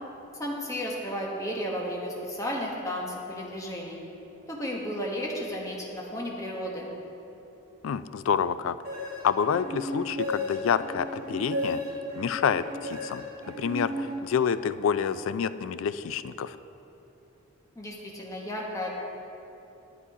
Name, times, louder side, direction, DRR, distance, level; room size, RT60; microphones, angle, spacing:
voice 1, 0.4-4.0 4.5-6.9 17.7-19.0, equal, 15° left, -2 dB, 1.2 m, -33 dB
voice 2, 7.8-8.8 9.2-11.8 12.1-13.2 13.6-16.6, left 7 dB, 85° left, 14 dB, 0.3 m, -28 dB
sound 1, 8.8-14.7, left 1 dB, 45° right, 2.1 m, -34 dB
9.9 x 8.3 x 4.8 m, 3.0 s
head